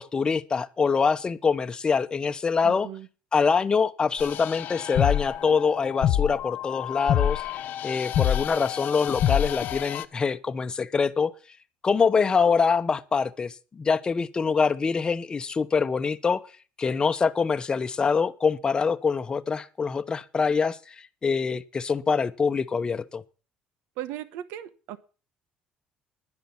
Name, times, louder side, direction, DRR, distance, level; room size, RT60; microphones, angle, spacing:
voice 1, 0.0-2.9 3.3-7.4 7.8-11.3 11.8-16.5 16.8-21.0 21.2-23.2, left 5 dB, 25° left, 0.9 m, -24 dB
voice 2, 2.6-3.1 24.0-25.0, right 12 dB, 85° right, 1.0 m, -37 dB
sound 1, 4.2-10.0, left 11 dB, 65° left, 1.0 m, -27 dB
11.0 x 10.5 x 7.0 m
cardioid pair, 120°, 3 cm